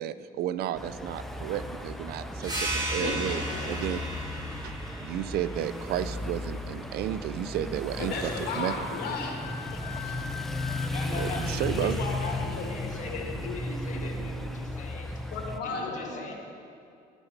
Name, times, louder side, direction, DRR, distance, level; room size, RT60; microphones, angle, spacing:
voice 1, 0.0-4.0 4.6-4.7 5.0-8.7 11.2-12.0, right 11 dB, 70° right, 14 dB, 0.4 m, -32 dB
sound 1, 0.7-15.6, left 1 dB, ahead, 0.6 m, -35 dB
sound 2, 2.4-7.6, right 2 dB, 25° right, 2.4 m, -36 dB
voice 2, 3.0-3.7 8.0-9.4 9.7-10.3 11.8-14.5 15.3-16.3, left 3 dB, 75° left, 0 dB, 1.9 m, -36 dB
Wind instrument woodwind instrument, 8.7-11.5, left 8 dB, 20° left, 2.3 m, -43 dB
voice 3, 10.9-15.2 15.6-16.4, left 4 dB, 45° left, -1 dB, 1.8 m, -40 dB
11.0 x 6.0 x 6.6 m, 2.5 s
cardioid pair, 110°, 17 cm